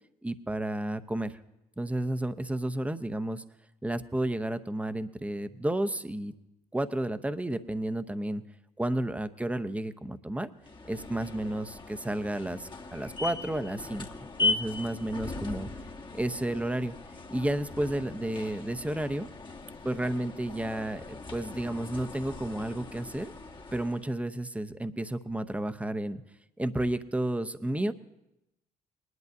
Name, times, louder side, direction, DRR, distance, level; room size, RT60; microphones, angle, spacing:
voice 1, 0.2-1.4 1.8-3.4 3.8-6.3 6.7-8.4 8.8-10.5 10.9-14.1 14.4-15.7 16.1-16.9 17.3-19.3 19.8-23.3 23.7-26.2 26.6-27.9, right 1 dB, 5° right, 10 dB, 0.9 m, -32 dB
sound 1, 10.6-24.1, left 3 dB, 25° left, 1.2 m, -38 dB
21.5 x 11.0 x 2.7 m, 0.90 s
hypercardioid pair, 45°, 19 cm